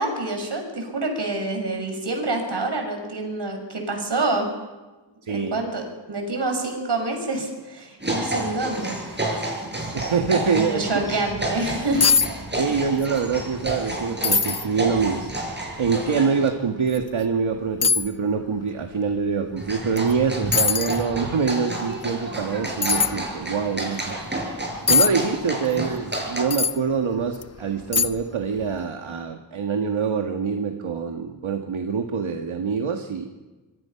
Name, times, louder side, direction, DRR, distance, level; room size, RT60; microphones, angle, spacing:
voice 1, 0.0-4.5 5.3-5.8 6.1-9.0 10.4-12.1, right 2 dB, 55° right, 4 dB, 6.6 m, -27 dB
voice 2, 5.2-5.6 9.9-10.8 12.6-15.3 15.8-24.2 24.9-33.3, right 5 dB, 75° right, 4 dB, 1.9 m, -25 dB
sound 1, 8.0-16.5 19.6-26.4, right 1 dB, 20° right, 7.0 m, -30 dB
sound 2, 11.6-11.7 12.0-12.3 12.6-13.1 13.5-13.6 14.2-14.7 15.3-15.4 16.9-17.0 17.8-18.1 20.0-20.1 20.5-21.0 22.8-23.1 24.9-25.1 26.5-26.8 27.3-27.4 27.9-28.3 28.6-28.7, left 6 dB, 30° left, 0.8 m, -20 dB
26.0 x 23.0 x 5.9 m, 1.2 s
wide cardioid pair, 80°, 48 cm